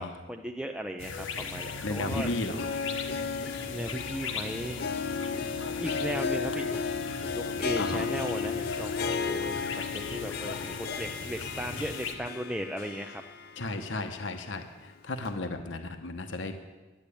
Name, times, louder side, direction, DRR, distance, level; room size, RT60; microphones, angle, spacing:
voice 1, 0.0-2.3 3.7-4.9 5.8-6.7 7.3-13.2, equal, 5° right, 3 dB, 0.5 m, -37 dB
sound 1, 1.0-12.1, left 4 dB, 85° left, 1.3 m, -39 dB
voice 2, 1.8-2.5 7.8-8.1 13.6-14.7 15.1-16.5, left 2 dB, 70° left, 6 dB, 1.0 m, -33 dB
Harp, 1.8-14.0 14.3-14.4 15.3-15.4, left 5 dB, 50° left, 0.6 m, -34 dB
10.5 x 10.0 x 8.4 m, 1.2 s
head